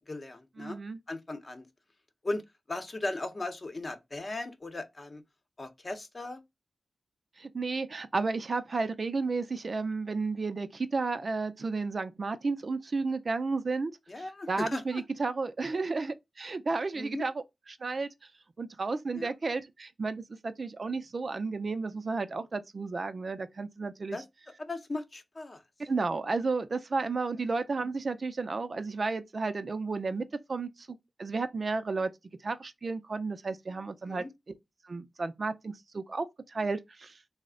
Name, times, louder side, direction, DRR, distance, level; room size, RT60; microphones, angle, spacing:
voice 1, 0.1-0.8 1.1-1.7 2.2-2.4 2.7-5.2 5.6-6.4 14.1-15.0 15.7-15.8 17.0-17.3 19.1-19.3 24.1-24.2 24.6-25.6 34.0-34.3, left 2 dB, 40° left, 0.8 m, -37 dB
voice 2, 0.6-1.0 7.4-13.9 14.2-17.3 17.8-18.1 18.6-24.2 25.8-30.9 31.2-32.1 32.4-34.3 34.8-37.2, right 3 dB, 55° right, 0.4 m, -32 dB
3.2 x 2.1 x 3.6 m
cardioid pair, 60°, 0 cm